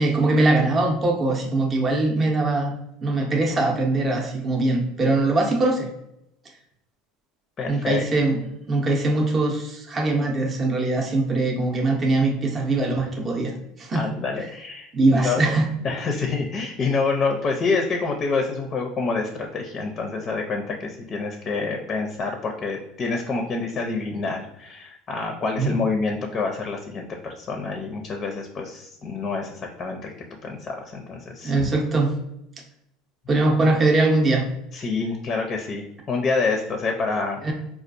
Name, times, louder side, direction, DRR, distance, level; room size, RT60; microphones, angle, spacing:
voice 1, 0.0-2.7 3.0-5.9 7.7-8.4 8.7-14.0 14.9-15.7 25.6-25.8 31.4-32.2 33.3-34.5 37.4-37.5, right 2 dB, 25° right, 1 dB, 0.7 m, -21 dB
voice 2, 7.6-8.0 12.5-12.6 13.9-15.5 15.8-30.1 30.4-31.5 34.7-37.5, left 4 dB, 35° left, 3 dB, 0.5 m, -27 dB
4.3 x 2.3 x 2.5 m, 0.82 s
supercardioid pair, 115°, 0 cm